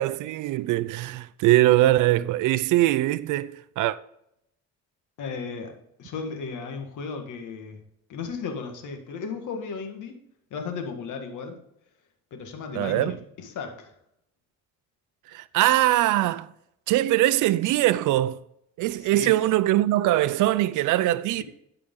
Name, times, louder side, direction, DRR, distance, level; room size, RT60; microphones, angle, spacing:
voice 1, 0.0-4.0 12.7-13.2 15.3-16.5 16.9-18.4 18.8-21.4, right 15 dB, 85° right, 0.5 m, -22 dB
voice 2, 5.2-7.8 8.1-10.2 10.5-11.6 12.3-13.1 13.4-13.9 19.1-19.3, left 5 dB, 80° left, 1.8 m, -35 dB
13.0 x 5.0 x 3.8 m
cardioid pair, 90°, 30 cm